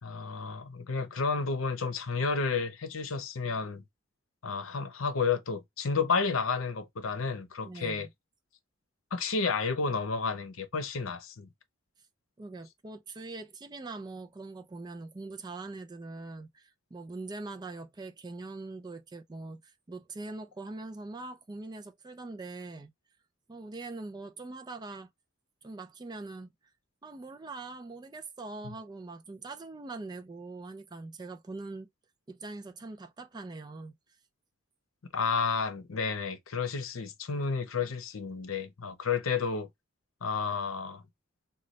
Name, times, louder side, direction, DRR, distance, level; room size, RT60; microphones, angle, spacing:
voice 1, 0.0-3.8 4.4-8.1 9.1-11.5 28.6-28.7 35.1-39.7 40.2-41.0, left 5 dB, 90° left, 0.7 m, -31 dB
voice 2, 7.6-8.1 12.4-22.9 23.5-25.1 25.6-26.5 27.0-31.9 32.3-34.0, right 3 dB, 20° right, 0.4 m, -42 dB
3.9 x 2.3 x 3.1 m
head